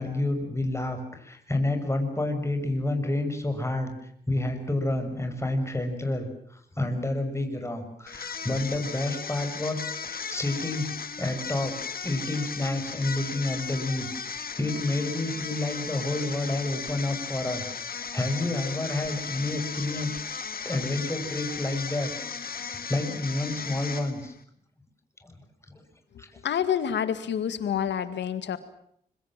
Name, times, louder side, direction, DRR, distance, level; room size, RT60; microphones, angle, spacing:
voice 1, 0.0-3.9 4.3-10.9 11.2-11.7 12.0-20.2 20.6-22.1 22.5-24.3 25.2-25.3 26.2-26.3, left 2 dB, 15° left, 5 dB, 6.4 m, -29 dB
sound 1, 8.1-24.4, left 6 dB, 55° left, 1.9 m, -36 dB
voice 2, 26.4-28.6, left 8 dB, 85° left, 12 dB, 2.0 m, -28 dB
25.5 x 23.5 x 7.5 m, 0.66 s
cardioid pair, 50°, 18 cm